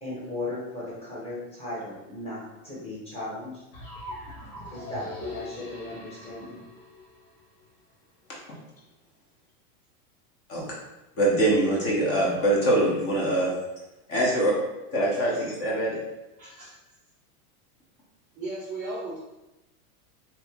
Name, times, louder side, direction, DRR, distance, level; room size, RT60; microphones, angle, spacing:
voice 1, 0.0-3.6 4.7-6.6 10.5-10.7, left 2 dB, 15° left, -7 dB, 1.2 m, -37 dB
sound 1, 3.7-7.7, left 1 dB, 80° left, 1.4 m, -41 dB
voice 2, 11.2-13.5 14.1-14.5 14.9-16.0, right 1 dB, 35° left, -4 dB, 0.9 m, -23 dB
voice 3, 16.4-16.8 18.4-19.2, right 2 dB, 20° right, -7 dB, 0.3 m, -35 dB
3.0 x 2.5 x 3.6 m, 0.96 s
supercardioid pair, 145°, 43 cm